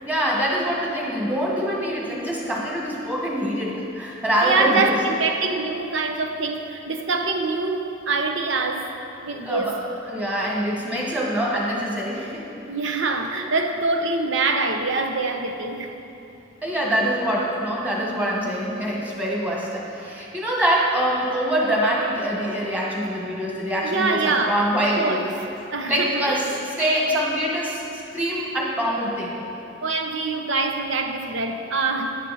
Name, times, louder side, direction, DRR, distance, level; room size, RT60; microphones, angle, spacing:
voice 1, 0.0-4.9 9.3-9.8 10.1-12.5 16.6-25.3 25.9-26.5 26.8-29.4, equal, 10° right, -4 dB, 1.6 m, -24 dB
voice 2, 4.4-8.9 9.2-9.7 12.7-16.0 23.8-24.7 25.0-25.2 25.7-26.4 29.8-32.2, right 3 dB, 65° right, 5 dB, 0.9 m, -24 dB
11.0 x 10.5 x 4.2 m, 2.8 s
head